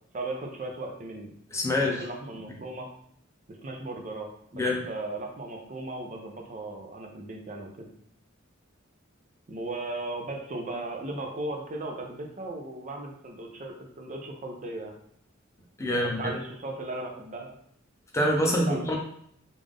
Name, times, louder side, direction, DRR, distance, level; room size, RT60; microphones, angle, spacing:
voice 1, 0.1-1.3 1.8-2.9 3.6-7.9 9.5-14.9 15.9-17.5 18.7-18.8, right 2 dB, 35° right, 2 dB, 0.5 m, -37 dB
voice 2, 1.5-2.1 4.5-4.8 15.8-16.3 18.1-19.0, left 1 dB, 15° left, -1 dB, 0.6 m, -26 dB
3.3 x 2.5 x 3.6 m, 0.67 s
head